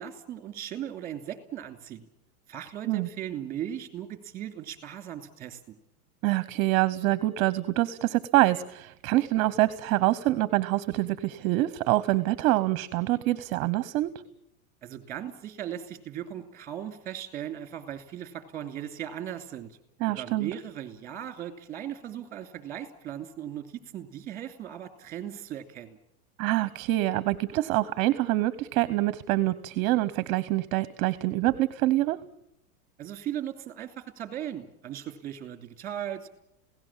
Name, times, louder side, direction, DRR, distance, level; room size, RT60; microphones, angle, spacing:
voice 1, 0.0-2.1 2.5-5.8 14.8-19.8 20.1-26.0 33.0-36.3, right 10 dB, 20° right, 9 dB, 2.7 m, -38 dB
voice 2, 6.2-14.1 20.0-20.5 26.4-32.2, right 17 dB, 35° right, 16 dB, 0.9 m, -25 dB
27.5 x 17.5 x 7.4 m, 0.83 s
supercardioid pair, 150°, 43 cm